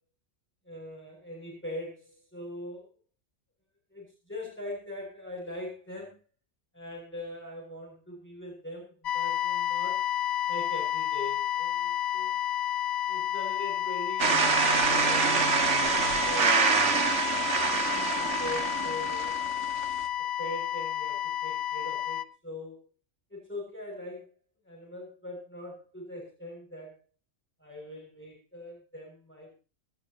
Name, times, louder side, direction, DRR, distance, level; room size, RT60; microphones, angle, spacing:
voice 1, 0.6-2.9 3.9-6.2 6.7-10.0 10.5-12.4 13.1-14.4 14.9-15.6 15.9-16.6 17.4-19.5 20.4-22.8 23.3-24.3 24.6-27.0 27.6-29.6, left 1 dB, 10° left, -3 dB, 6.8 m, -41 dB
sound 1, 9.0-22.2, left 12 dB, 60° left, 1.1 m, -31 dB
sound 2, 14.2-20.0, right 5 dB, 65° right, 1.9 m, -26 dB
18.5 x 18.5 x 3.0 m, 0.32 s
omnidirectional pair, 1.3 m